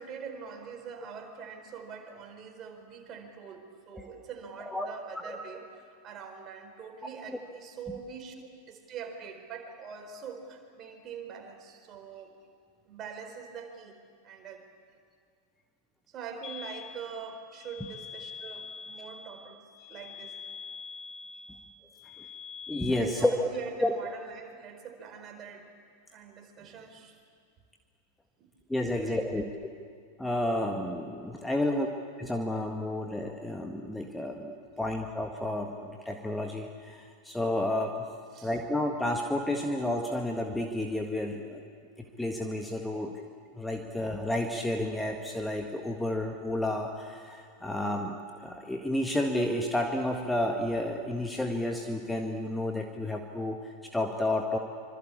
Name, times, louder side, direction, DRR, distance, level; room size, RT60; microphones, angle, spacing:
voice 1, 0.0-5.6 6.0-12.3 12.8-14.0 14.2-14.6 16.1-20.4 23.0-25.7 26.1-27.1 28.4-28.5 28.9-29.5 38.3-38.6, right 6 dB, 30° right, 4 dB, 4.5 m, -44 dB
sound 1, 16.4-23.0, left 5 dB, 30° left, 3.1 m, -44 dB
voice 2, 22.7-23.3 23.8-23.9 28.7-29.7 30.2-31.9 32.2-38.0 38.4-41.6 42.0-43.1 43.5-54.6, left 1 dB, 5° left, 3 dB, 1.7 m, -31 dB
25.5 x 25.0 x 8.6 m, 2.2 s
figure-of-eight pair, 90°, 0 cm